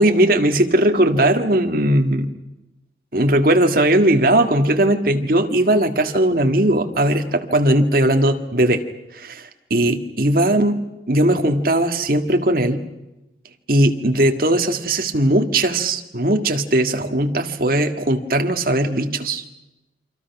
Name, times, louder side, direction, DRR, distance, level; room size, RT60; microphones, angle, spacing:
voice 1, 0.0-2.3 3.1-8.8 9.1-10.8 11.1-12.8 13.7-19.4, right 1 dB, 50° right, 5 dB, 1.8 m, -18 dB
28.5 x 25.5 x 6.0 m, 0.99 s
head